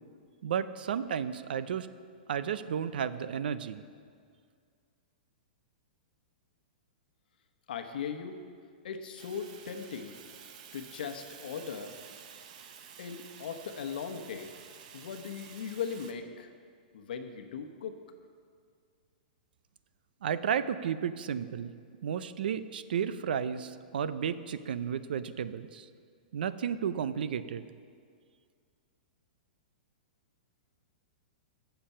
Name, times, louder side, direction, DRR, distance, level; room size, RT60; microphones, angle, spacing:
voice 1, 0.4-1.9 2.3-3.8 20.2-21.7 22.0-25.9 26.3-27.7, right 8 dB, 75° right, 14 dB, 0.6 m, -33 dB
voice 2, 7.7-8.4 8.8-10.2 10.7-12.0 13.0-14.5 14.9-16.5 16.9-18.0, left 6 dB, 70° left, 6 dB, 1.0 m, -38 dB
Fire, 9.2-16.1, right 7 dB, 50° right, 1.0 m, -51 dB
15.0 x 6.9 x 5.6 m, 2.1 s
hypercardioid pair, 165°, 5 cm